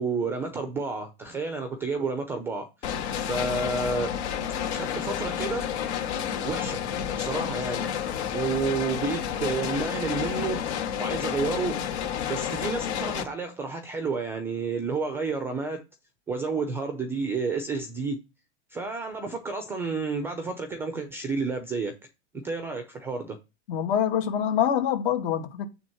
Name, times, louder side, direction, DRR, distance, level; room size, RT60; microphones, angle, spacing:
voice 1, 0.0-4.2 4.7-5.7 6.4-6.8 7.2-7.9 8.3-11.8 12.3-15.8 16.3-18.2 18.7-21.9 22.4-23.4, right 4 dB, 5° right, 0.4 m, -30 dB
sound 1, 2.8-13.2, left 9 dB, 65° left, 2.0 m, -30 dB
voice 2, 23.7-25.7, left 9 dB, 50° left, 2.3 m, -25 dB
9.1 x 3.4 x 4.4 m
supercardioid pair, 165°, 35 cm